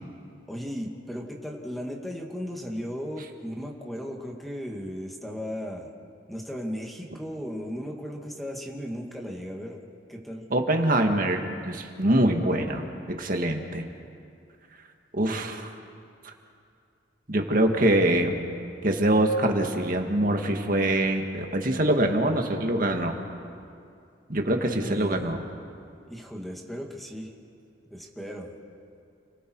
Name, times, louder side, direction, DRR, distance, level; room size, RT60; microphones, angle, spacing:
voice 1, 0.5-5.9 6.3-9.8 10.1-10.4 24.8-25.4 26.1-27.3 27.9-28.5, equal, ahead, 0 dB, 2.3 m, -36 dB
voice 2, 10.5-13.8 15.1-15.7 17.3-18.4 18.8-23.2 24.3-25.4, right 1 dB, 45° right, 3 dB, 2.0 m, -24 dB
30.0 x 21.0 x 4.8 m, 2.4 s
head